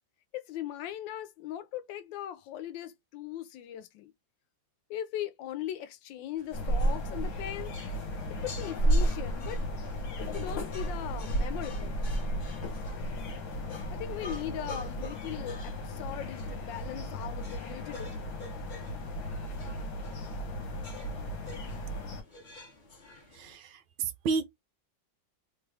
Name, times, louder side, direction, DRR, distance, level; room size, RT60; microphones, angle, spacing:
voice 1, 0.3-4.1 4.9-7.7 8.4-9.6 10.3-12.0 13.9-18.3, left 11 dB, 75° left, 1.2 m, -39 dB
sound 1, 6.4-23.6, left 3 dB, 45° left, 0.6 m, -50 dB
sound 2, 6.5-22.2, right 1 dB, 60° left, 1.4 m, -33 dB
voice 2, 23.3-24.5, right 4 dB, 75° right, 1.1 m, -32 dB
3.2 x 2.3 x 3.3 m
omnidirectional pair, 2.1 m